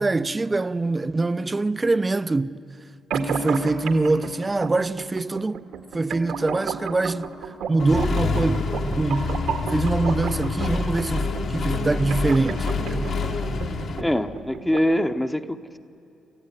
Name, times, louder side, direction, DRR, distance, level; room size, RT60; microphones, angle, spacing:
voice 1, 0.0-2.6 3.1-5.6 5.9-7.3 7.7-8.7 9.0-9.3 9.7-13.1, right 3 dB, 20° right, 0.6 m, -24 dB
sound 1, 3.1-15.1, right 5 dB, 80° right, 1.9 m, -34 dB
Accelerating revving vroom, 7.8-14.0, left 3 dB, 65° left, 2.1 m, -27 dB
voice 2, 14.0-15.8, equal, 10° left, 1.0 m, -24 dB
28.5 x 14.5 x 9.9 m
cardioid pair, 90°, 0 cm